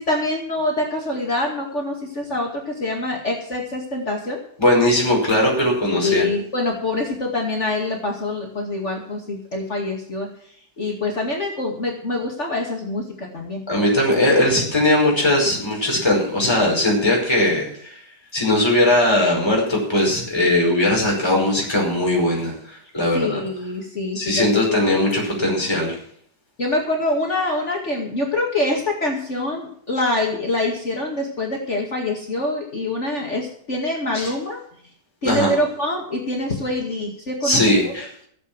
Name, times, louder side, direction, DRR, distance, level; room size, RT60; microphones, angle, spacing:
voice 1, 0.0-4.4 5.9-10.3 10.8-13.6 23.1-25.1 26.6-34.6 35.2-37.9, left 2 dB, 45° left, -1 dB, 2.5 m, -25 dB
voice 2, 4.6-6.2 13.7-18.0 18.3-23.4 24.2-26.0 34.1-34.3 35.2-35.5 37.4-38.1, left 1 dB, 15° left, -2 dB, 5.2 m, -19 dB
16.0 x 8.2 x 6.1 m, 0.63 s
omnidirectional pair, 1.8 m